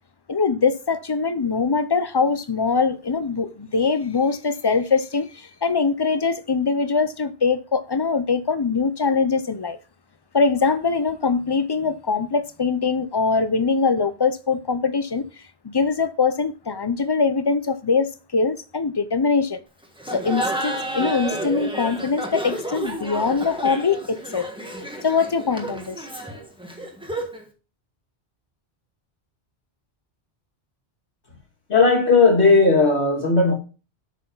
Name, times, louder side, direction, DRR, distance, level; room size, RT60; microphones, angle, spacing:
voice 1, 0.3-9.8 10.3-15.3 15.6-19.6 20.1-24.5 25.0-26.1, left 4 dB, 30° left, 0.5 m, -22 dB
Laughter, 20.0-27.5, right 1 dB, 5° right, 1.4 m, -31 dB
voice 2, 31.7-33.5, left 3 dB, 90° left, 2.8 m, -16 dB
8.1 x 6.3 x 3.9 m
omnidirectional pair, 1.1 m